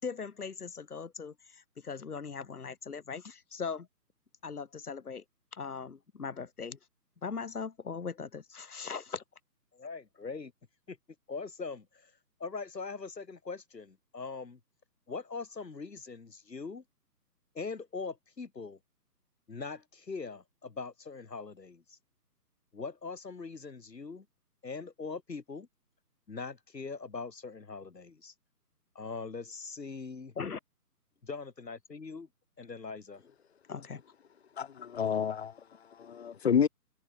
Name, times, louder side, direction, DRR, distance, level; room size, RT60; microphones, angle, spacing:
voice 1, 0.0-3.9 4.4-5.2 5.5-6.8 7.2-9.2 30.4-30.6 33.7-34.0, left 5 dB, 65° left, 4.9 m, -39 dB
voice 2, 9.7-10.5 10.9-11.0 11.3-12.1 12.4-14.6 15.1-16.8 17.5-18.8 19.5-22.0 22.7-24.2 24.6-25.7 26.3-28.3 28.9-30.3 31.2-32.3 32.6-33.2, left 4 dB, 85° left, 6.6 m, -41 dB
voice 3, 34.5-36.7, left 7 dB, 40° left, 3.8 m, -30 dB
hypercardioid pair, 170°, 48 cm